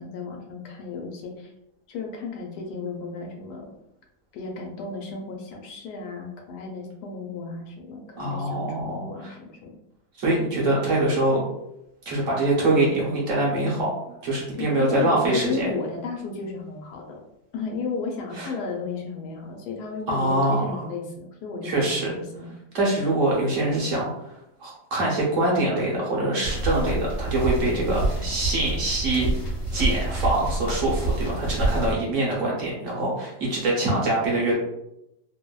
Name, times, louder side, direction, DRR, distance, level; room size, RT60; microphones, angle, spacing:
voice 1, 0.0-1.5 1.9-3.6 4.3-9.7 14.5-17.2 17.5-22.5, left 4 dB, 90° left, 1 dB, 1.2 m, -34 dB
voice 2, 8.2-9.3 10.2-11.4 12.1-13.9 14.2-15.7 18.3-18.5 20.1-20.8 21.6-22.1 22.7-24.1 24.6-34.5, right 2 dB, 60° right, -4 dB, 1.0 m, -24 dB
sound 1, 26.4-31.9, right 2 dB, 50° left, 1.2 m, -27 dB
2.8 x 2.0 x 2.2 m, 0.85 s
omnidirectional pair, 1.7 m